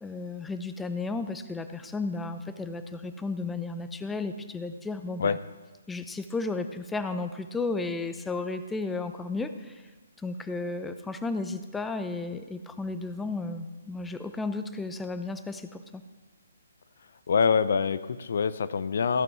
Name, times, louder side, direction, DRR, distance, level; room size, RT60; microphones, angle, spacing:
voice 1, 0.0-5.4 5.9-9.8 10.2-16.0, left 3 dB, 5° left, 9 dB, 0.6 m, -33 dB
voice 2, 17.3-19.2, left 6 dB, 60° left, 14 dB, 0.5 m, -25 dB
14.5 x 6.1 x 6.0 m, 1.3 s
figure-of-eight pair, 135°, 0 cm